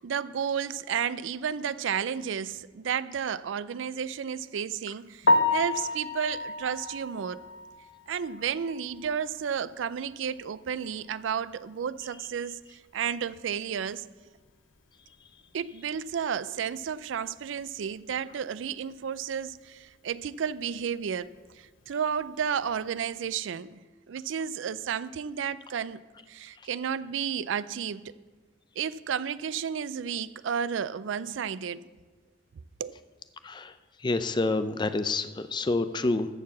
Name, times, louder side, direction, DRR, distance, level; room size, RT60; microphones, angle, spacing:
voice 1, 0.0-7.4 8.1-14.1 15.5-21.3 21.6-23.8 24.1-26.0 26.3-28.1 28.8-31.8 32.8-33.0, right 7 dB, 90° right, 0.4 m, -32 dB
Piano, 5.2-9.2 9.6-9.7 10.2-10.3 10.6-10.7 13.8-13.9 22.4-22.7, left 2 dB, 75° left, 0.7 m, -29 dB
voice 2, 34.0-36.3, left 2 dB, 25° left, 0.4 m, -28 dB
13.5 x 4.6 x 7.2 m
head